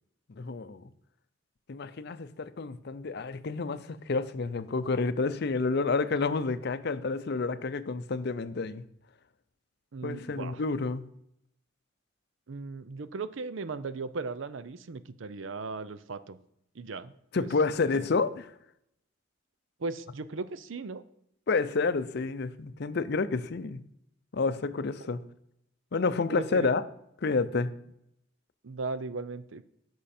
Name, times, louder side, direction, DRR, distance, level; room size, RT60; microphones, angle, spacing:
voice 1, 0.3-0.9 1.7-8.8 10.0-11.1 17.3-18.5 21.5-23.8 24.3-25.2 25.9-26.8 27.2-27.7, left 4 dB, 55° left, 0.5 m, -29 dB
voice 2, 9.9-10.6 12.5-16.4 16.7-17.5 18.0-18.1 19.8-21.0 26.3-26.7 28.6-29.6, right 3 dB, 70° right, 0.6 m, -37 dB
10.5 x 6.3 x 4.3 m
head